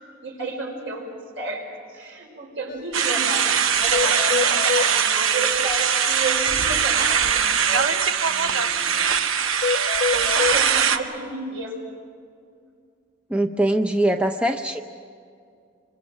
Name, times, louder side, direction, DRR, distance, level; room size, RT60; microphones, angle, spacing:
voice 1, 0.2-9.1 10.1-11.8, right 2 dB, 65° right, 1 dB, 5.7 m, -32 dB
sound 1, 2.7-2.8 3.0-3.2 3.4-3.5 3.9-4.9 9.6-10.6, left 6 dB, 45° left, 0.6 m, -25 dB
sound 2, 2.9-11.0, right 7 dB, 80° right, 1.0 m, -21 dB
voice 2, 13.3-14.8, right 1 dB, 5° right, 4 dB, 0.7 m, -22 dB
27.0 x 24.5 x 6.3 m, 2.3 s
head